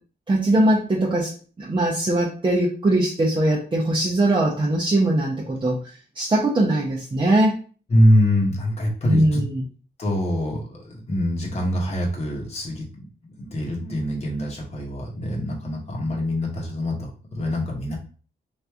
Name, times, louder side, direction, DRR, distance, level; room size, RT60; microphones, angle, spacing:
voice 1, 0.3-1.3 1.6-5.8 6.1-7.5 9.0-9.6, right 1 dB, 25° right, -5 dB, 0.7 m, -21 dB
voice 2, 7.9-9.4 10.0-13.1 13.4-18.0, equal, 35° left, -2 dB, 1.0 m, -24 dB
3.1 x 2.5 x 3.4 m, 0.40 s
cardioid pair, 100°, 18 cm